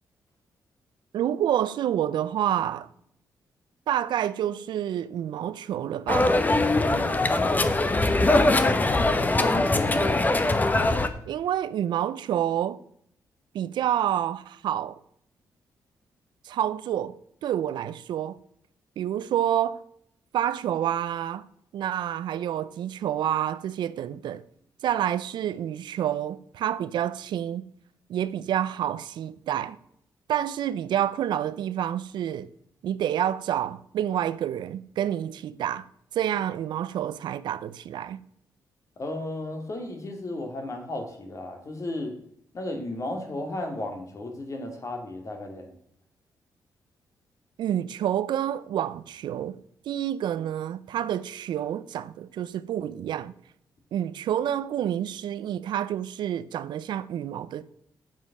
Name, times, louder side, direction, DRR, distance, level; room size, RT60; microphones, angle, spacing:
voice 1, 1.1-2.9 3.9-6.3 11.3-12.8 13.5-15.0 16.4-18.4 19.0-19.8 20.3-21.4 21.7-24.4 24.8-27.6 28.1-29.8 30.3-32.5 32.8-35.9 36.1-38.2 47.6-49.6 49.9-53.3 53.9-57.6, right 10 dB, 80° right, 0.5 m, -28 dB
sound 1, 6.1-11.1, left 2 dB, 20° left, 1.0 m, -22 dB
voice 2, 7.2-7.7 9.4-10.1 39.0-42.1 42.5-45.7, left 1 dB, 45° left, 2.5 m, -34 dB
8.7 x 7.4 x 6.0 m
cardioid pair, 90°, 8 cm